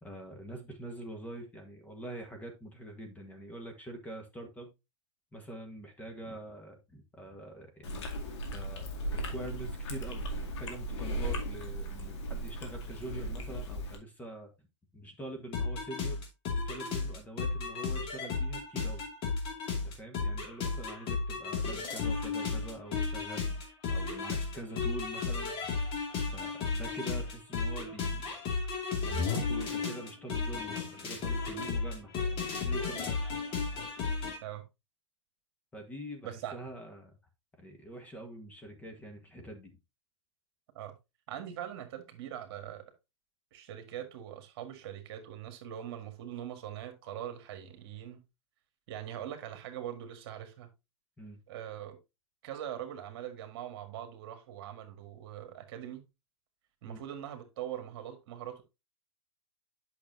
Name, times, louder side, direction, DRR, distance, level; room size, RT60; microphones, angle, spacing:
voice 1, 0.0-4.7 5.3-8.1 8.5-14.7 14.9-16.2 16.7-19.0 19.7-25.5 26.3-28.3 29.1-33.3 35.7-37.2 37.6-39.8 51.2-51.4 56.8-57.0, right 1 dB, 10° left, 1.4 m, -45 dB
Chewing mastication, 7.8-14.0, right 1 dB, 65° left, 2.2 m, -37 dB
sound 1, 15.5-34.4, left 4 dB, 35° left, 2.4 m, -34 dB
voice 2, 36.2-36.6 40.8-40.9 41.3-42.8 43.5-48.2 48.9-50.7 51.5-52.0 52.4-56.0 56.8-58.6, right 10 dB, 55° right, 1.8 m, -42 dB
8.6 x 6.1 x 2.7 m
hypercardioid pair, 125°, 16 cm